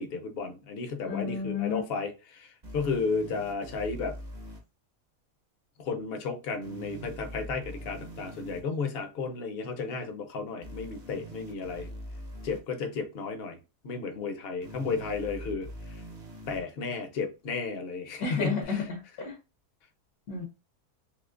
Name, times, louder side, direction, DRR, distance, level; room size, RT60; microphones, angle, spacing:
voice 1, 0.0-4.2 5.8-11.9 12.4-13.6 13.8-16.0 16.5-18.8, left 4 dB, 50° left, 0.7 m, -33 dB
voice 2, 1.1-1.8 18.2-19.4 20.3-20.5, left 5 dB, 70° left, 1.2 m, -32 dB
sound 1, 2.6-4.6 6.6-8.6 10.6-12.6 14.6-16.6 18.6-18.7, equal, 35° right, 0.7 m, -43 dB
3.6 x 2.9 x 2.4 m
omnidirectional pair, 1.7 m